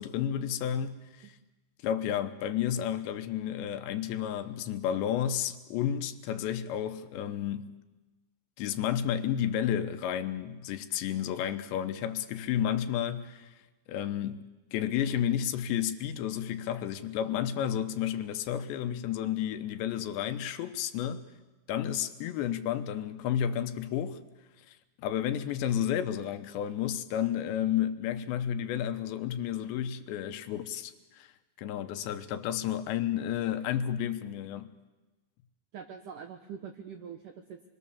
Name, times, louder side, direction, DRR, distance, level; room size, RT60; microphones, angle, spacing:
voice 1, 0.0-1.3 1.8-7.7 8.6-13.5 13.9-14.4 14.7-21.3 21.7-24.2 24.7-31.3 31.6-34.7, left 10 dB, 80° left, 3.2 m, -31 dB
voice 2, 35.7-37.7, right 7 dB, 70° right, 2.1 m, -44 dB
27.0 x 21.5 x 7.1 m
omnidirectional pair, 5.0 m